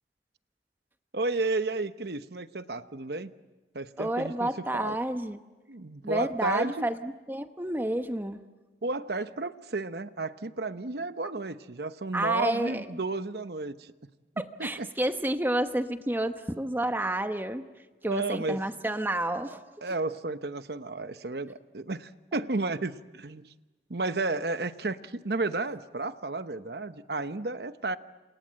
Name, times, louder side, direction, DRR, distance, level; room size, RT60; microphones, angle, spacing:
voice 1, 1.1-3.3 3.7-5.0 5.7-6.9 8.8-13.9 14.4-14.9 18.0-18.6 19.8-23.5 23.9-28.0, right 3 dB, 60° right, 11 dB, 1.0 m, -32 dB
voice 2, 4.0-5.4 6.0-8.4 12.1-12.9 14.4-17.6 18.0-19.6, right 1 dB, 10° right, 8 dB, 1.0 m, -30 dB
28.0 x 27.5 x 7.7 m, 1.2 s
head